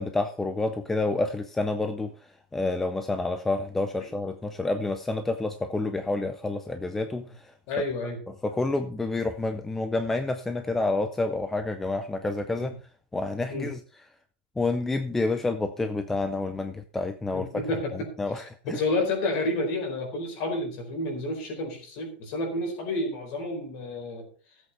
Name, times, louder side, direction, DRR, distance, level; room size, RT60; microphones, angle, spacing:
voice 1, 0.0-2.1 2.5-7.5 8.4-12.7 13.1-13.8 14.6-17.5 18.2-18.8, left 2 dB, 5° left, 8 dB, 0.5 m, -28 dB
voice 2, 7.7-8.2 12.6-12.7 13.5-13.7 17.3-24.3, left 2 dB, 40° left, 3 dB, 4.4 m, -30 dB
15.5 x 8.1 x 4.2 m, 0.39 s
supercardioid pair, 180°, 6 cm